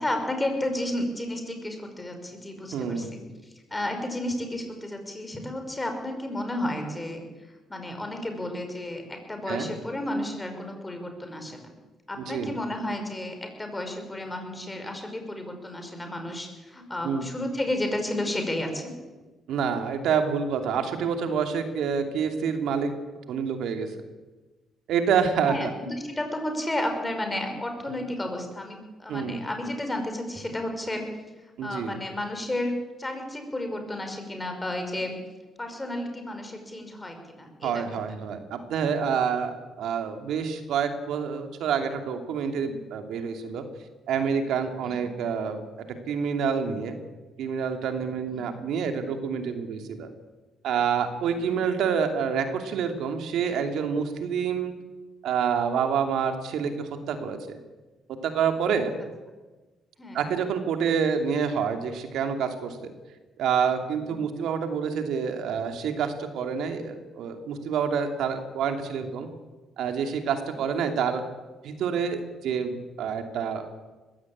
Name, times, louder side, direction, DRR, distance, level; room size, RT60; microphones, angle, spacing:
voice 1, 0.0-7.3 7.7-9.0 9.3-11.6 12.1-18.9 25.5-31.0 31.6-32.7 33.0-35.2 35.6-37.8 44.8-45.1 48.3-48.6 60.0-60.2 64.0-64.2 70.5-70.6, left 1 dB, 15° left, 5 dB, 5.6 m, -32 dB
voice 2, 2.7-3.1 9.5-9.7 12.3-12.5 17.0-17.3 19.5-22.9 23.3-23.9 24.9-25.7 29.1-29.4 31.6-32.0 37.6-43.6 44.1-45.6 46.1-47.0 47.4-50.1 50.6-54.7 55.2-57.6 58.2-58.9 60.1-62.8 63.4-69.3 69.8-71.2 71.6-73.7, right 6 dB, 80° right, 6 dB, 2.7 m, -27 dB
20.5 x 16.0 x 8.7 m, 1.2 s
cardioid pair, 90°, 0 cm